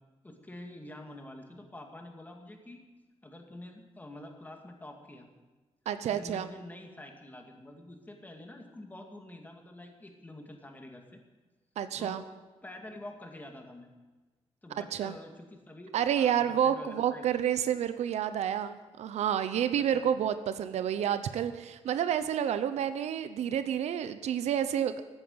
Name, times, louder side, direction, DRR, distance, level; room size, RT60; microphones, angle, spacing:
voice 1, 0.2-2.8 3.2-5.3 6.1-11.2 12.0-12.3 12.6-13.9 14.6-17.2 19.8-20.0, left 1 dB, 15° left, 3 dB, 2.3 m, -47 dB
voice 2, 5.9-6.5 11.8-12.2 14.9-15.2 15.9-25.0, right 9 dB, 90° right, 11 dB, 0.8 m, -29 dB
14.5 x 9.2 x 8.0 m, 1.2 s
cardioid pair, 115°, 11 cm